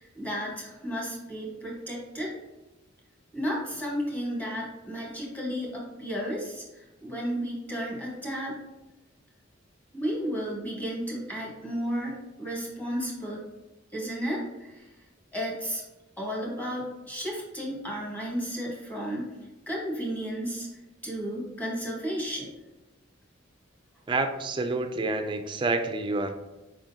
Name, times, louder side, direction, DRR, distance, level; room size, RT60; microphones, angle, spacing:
voice 1, 0.0-2.3 3.3-8.6 9.9-13.4 13.9-14.9 15.3-15.8 16.2-19.3 19.7-20.7 21.0-22.5, equal, 10° left, -3 dB, 1.3 m, -33 dB
voice 2, 24.1-26.3, right 3 dB, 25° right, 6 dB, 0.4 m, -28 dB
4.9 x 3.7 x 2.7 m, 1.0 s
head